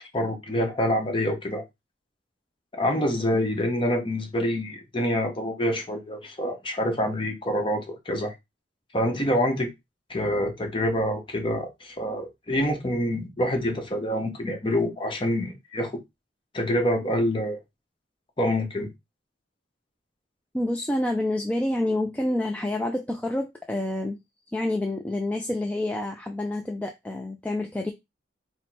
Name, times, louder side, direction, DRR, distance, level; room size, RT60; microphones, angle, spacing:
voice 1, 0.1-1.6 2.7-8.3 8.9-9.7 10.1-16.0 16.5-17.6 18.4-18.9, equal, 25° left, 0.9 m, -26 dB
voice 2, 20.5-24.2 24.5-27.9, left 1 dB, 5° left, 0.3 m, -28 dB
4.2 x 2.1 x 4.4 m
head